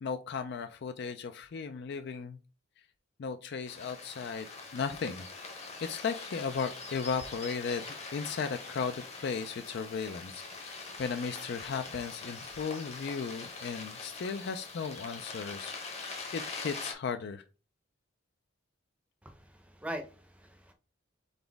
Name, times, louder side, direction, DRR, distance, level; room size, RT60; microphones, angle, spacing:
voice 1, 0.0-2.4 3.2-5.3 5.5-7.9 8.1-17.4, left 5 dB, 55° left, 0.4 m, -36 dB
sound 1, 3.7-16.9, left 3 dB, 35° left, 0.8 m, -43 dB
voice 2, 19.2-20.7, right 1 dB, 5° right, 0.6 m, -42 dB
4.0 x 3.9 x 3.4 m
head